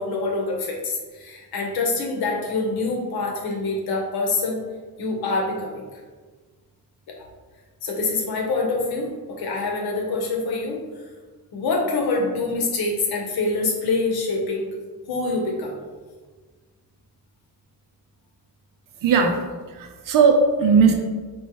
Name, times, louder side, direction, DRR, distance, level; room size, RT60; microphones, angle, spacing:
voice 1, 0.0-4.6 5.0-6.0 7.1-7.2 7.8-9.1 9.4-11.1 11.5-14.7 15.1-15.7, left 3 dB, 65° left, 0 dB, 1.0 m, -25 dB
voice 2, 19.0-20.9, right 5 dB, 55° right, 3 dB, 0.6 m, -18 dB
4.5 x 3.0 x 3.0 m, 1.4 s
cardioid pair, 165°, 39 cm